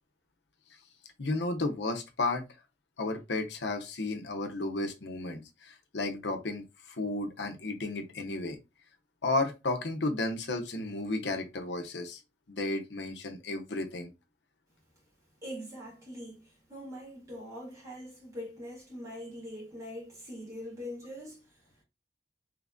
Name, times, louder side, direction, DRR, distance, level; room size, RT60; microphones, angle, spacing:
voice 1, 1.2-2.4 3.0-6.6 7.0-8.6 9.2-12.2 12.5-14.1, left 2 dB, 80° left, 0.8 m, -33 dB
voice 2, 15.4-21.5, equal, 15° right, 2.2 m, -43 dB
3.5 x 3.2 x 2.5 m
head